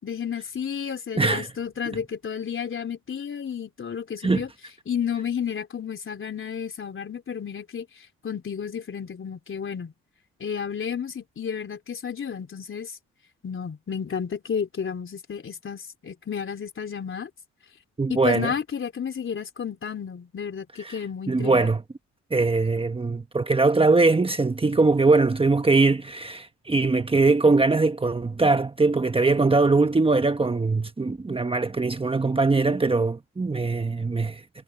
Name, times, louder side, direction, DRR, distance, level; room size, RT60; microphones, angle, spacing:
voice 1, 0.0-4.5 4.9-7.9 8.2-9.9 10.4-12.9 13.4-17.3 18.1-21.7, left 7 dB, 40° left, 3.7 m, -32 dB
voice 2, 1.1-1.5 4.2-4.4 18.0-18.5 20.8-21.0 21.3-21.8 22.3-34.4, right 3 dB, 20° right, 1.3 m, -21 dB
cardioid pair, 90°, 30 cm